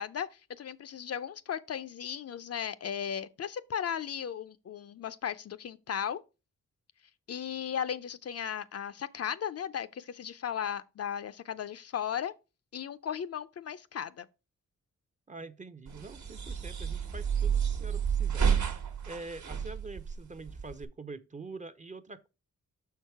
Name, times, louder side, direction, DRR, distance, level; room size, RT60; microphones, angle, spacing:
voice 1, 0.0-6.2 7.3-12.3 12.7-14.3, left 8 dB, 50° left, 0.5 m, -36 dB
voice 2, 15.3-18.5 19.1-22.3, right 3 dB, 25° right, 0.6 m, -45 dB
sound 1, 15.9-20.9, right 7 dB, 70° right, 1.3 m, -30 dB
6.2 x 4.6 x 4.6 m
cardioid pair, 80°, 31 cm